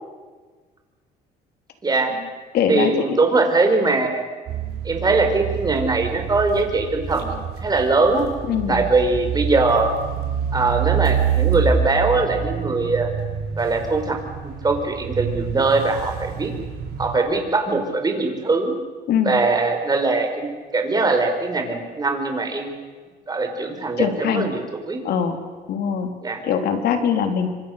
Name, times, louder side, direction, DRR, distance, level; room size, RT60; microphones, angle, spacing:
voice 1, 1.8-2.1 2.7-4.3 4.9-8.2 8.7-9.9 10.5-13.1 13.6-14.2 14.4-16.5 17.0-18.7 19.2-22.7 23.3-25.0 26.2-26.4, right 3 dB, 25° right, 5 dB, 5.1 m, -21 dB
voice 2, 2.5-3.2 8.4-8.8 19.1-19.4 24.0-24.5 25.0-25.4 25.7-26.1 26.4-27.5, left 7 dB, 70° left, 6 dB, 3.5 m, -22 dB
sound 1, 4.5-17.2, right 7 dB, 70° right, 5.1 m, -27 dB
27.5 x 24.5 x 6.7 m, 1.4 s
cardioid pair, 110°, 17 cm